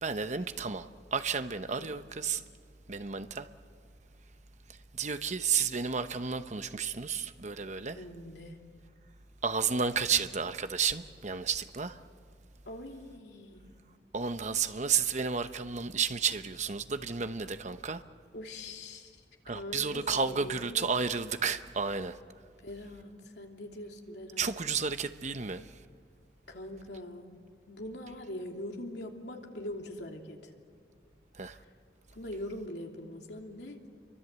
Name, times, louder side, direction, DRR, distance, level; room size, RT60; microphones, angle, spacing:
voice 1, 0.0-2.4 2.9-3.5 4.9-8.0 9.4-12.0 14.1-18.0 19.5-22.2 24.4-25.7 31.3-31.6, right 6 dB, 40° right, 0.9 m, -32 dB
voice 2, 7.9-8.6 12.7-13.8 18.3-19.2 19.5-20.9 22.6-24.5 26.5-27.3 27.7-30.5 32.1-33.8, left 1 dB, 75° left, 3.0 m, -42 dB
29.0 x 24.0 x 8.2 m
head